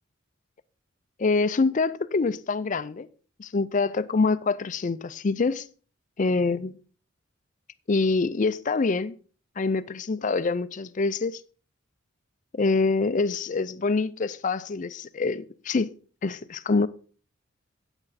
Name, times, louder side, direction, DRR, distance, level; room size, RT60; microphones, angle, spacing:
voice 1, 1.2-3.1 3.4-5.7 6.2-6.8 7.9-9.1 9.6-11.4 12.5-15.9 16.2-16.9, left 4 dB, 40° left, 0.4 m, -25 dB
8.9 x 8.6 x 4.1 m
head